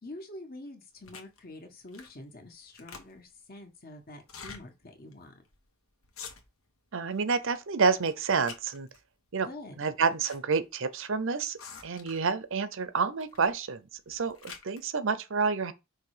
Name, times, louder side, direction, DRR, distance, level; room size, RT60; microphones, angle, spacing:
voice 1, 0.0-5.3 9.4-9.8, left 1 dB, 45° left, 1.5 m, -46 dB
sound 1, 1.0-1.4 1.9-2.2 2.5-3.4 4.2-4.6 5.1-5.2 5.5-5.7 6.0-6.7 7.1-7.6 8.0-9.0 9.8-10.4 10.6-10.7 11.6-12.4 13.2-13.5 14.0-14.8, left 5 dB, 75° left, 1.4 m, -47 dB
voice 2, 6.9-8.9 9.3-9.5 9.8-11.6 11.8-15.7, right 5 dB, 60° right, 0.7 m, -29 dB
5.7 x 3.3 x 5.0 m
head